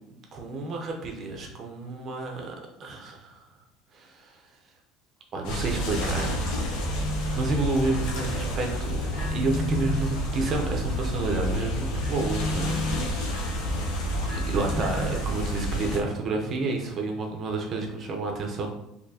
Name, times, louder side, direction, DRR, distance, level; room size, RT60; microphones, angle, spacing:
voice 1, 0.3-3.4 3.9-4.4 5.3-6.4 7.3-13.1 14.3-18.7, right 3 dB, 25° right, 2 dB, 0.6 m, -30 dB
sound 1, 5.4-16.0, equal, 65° left, 0.8 m, -29 dB
4.3 x 2.8 x 2.7 m, 0.83 s
cardioid pair, 175°, 0 cm